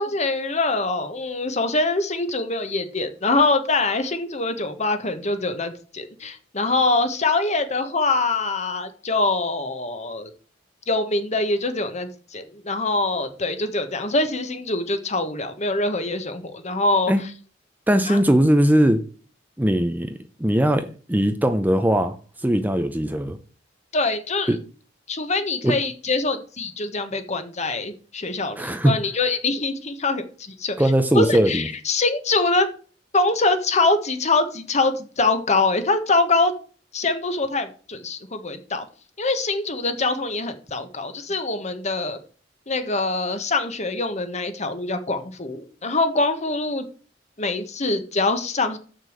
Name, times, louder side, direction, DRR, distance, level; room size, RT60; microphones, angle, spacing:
voice 1, 0.0-10.3 10.9-17.1 18.1-18.2 23.9-24.5 25.1-30.8 31.1-32.7 33.1-36.5 36.9-38.8 39.2-42.2 42.7-46.9 47.4-48.8, left 3 dB, 35° left, 1.4 m, -24 dB
voice 2, 17.9-19.0 19.6-22.2 22.4-23.4 24.5-24.6 25.6-25.7 28.6-28.9 30.8-31.7, right 1 dB, 10° right, 0.7 m, -20 dB
7.0 x 6.5 x 7.7 m
head